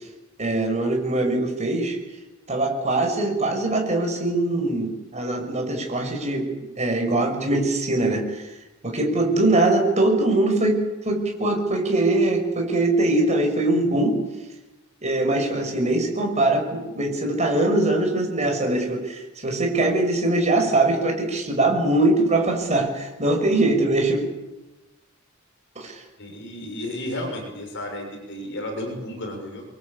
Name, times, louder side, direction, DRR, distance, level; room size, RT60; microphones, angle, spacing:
voice 1, 0.4-2.0 2.5-6.5 6.8-8.5 8.8-10.8 11.0-14.2 15.0-24.2 25.8-26.0, right 2 dB, 35° right, 2 dB, 6.2 m, -22 dB
voice 2, 26.2-29.6, left 1 dB, 60° left, 3 dB, 6.4 m, -33 dB
26.0 x 23.0 x 8.5 m, 1.0 s
head